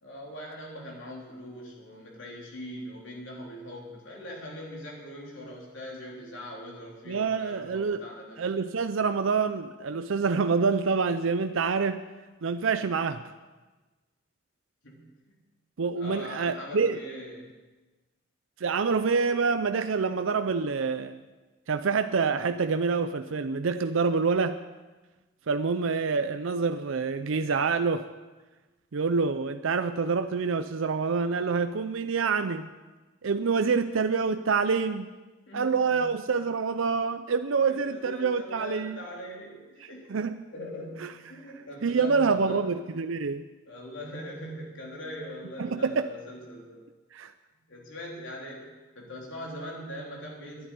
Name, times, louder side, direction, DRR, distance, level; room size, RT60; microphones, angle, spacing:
voice 1, 0.0-8.4 14.8-15.4 16.0-17.5 35.5-36.1 37.6-40.1 40.5-42.7 43.7-46.8 47.7-48.7 49.0-50.7, equal, 65° left, -2 dB, 3.5 m, -41 dB
voice 2, 7.1-8.0 8.4-12.0 12.4-13.2 15.8-17.0 18.6-21.2 21.7-24.6 25.5-28.1 28.9-32.7 33.2-35.1 35.5-39.0 40.1-40.4 41.0-41.1 41.8-43.4 45.6-46.1 47.1-47.3, right 5 dB, 75° right, 9 dB, 0.5 m, -26 dB
11.0 x 9.0 x 9.8 m, 1.2 s
head